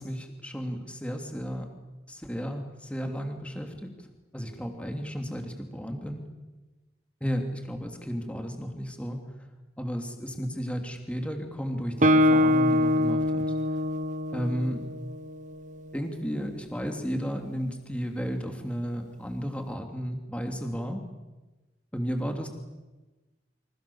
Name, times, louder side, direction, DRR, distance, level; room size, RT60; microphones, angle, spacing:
voice 1, 0.0-1.7 2.1-3.9 4.3-6.2 7.2-9.3 9.8-13.4 14.3-14.8 15.9-21.0 21.9-22.5, equal, 5° left, 3 dB, 3.1 m, -33 dB
Guitar, 12.0-15.7, left 1 dB, 40° right, 1.0 m, -24 dB
30.0 x 26.0 x 7.3 m, 1.2 s
head